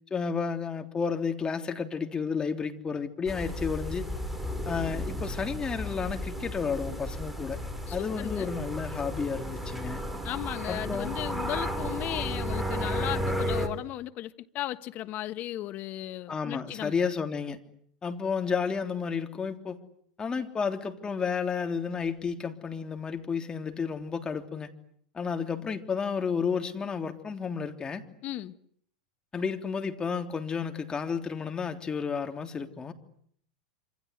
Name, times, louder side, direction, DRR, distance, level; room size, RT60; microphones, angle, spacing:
voice 1, 0.1-4.0 4.6-7.6 7.9-10.0 10.7-11.1 16.3-17.6 18.0-19.8 20.2-24.7 25.1-28.0 29.3-32.9, left 5 dB, 20° left, 3.4 m, -31 dB
sound 1, 3.3-13.7, equal, 5° right, 4.9 m, -33 dB
voice 2, 7.9-8.5 10.2-16.9 28.2-28.6, left 14 dB, 40° left, 1.5 m, -36 dB
27.0 x 26.5 x 8.2 m
hypercardioid pair, 95°, 4 cm